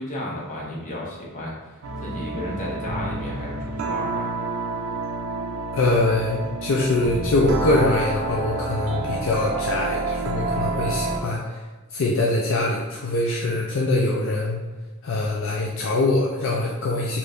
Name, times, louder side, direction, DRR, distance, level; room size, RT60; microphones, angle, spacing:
voice 1, 0.0-4.3, equal, 35° left, -4 dB, 0.9 m, -33 dB
sound 1, 1.8-11.3, right 2 dB, 90° right, 0.5 m, -29 dB
voice 2, 5.7-11.6 11.9-14.6 15.0-17.2, left 2 dB, 60° left, -2 dB, 0.4 m, -23 dB
3.0 x 2.6 x 3.4 m, 1.3 s
head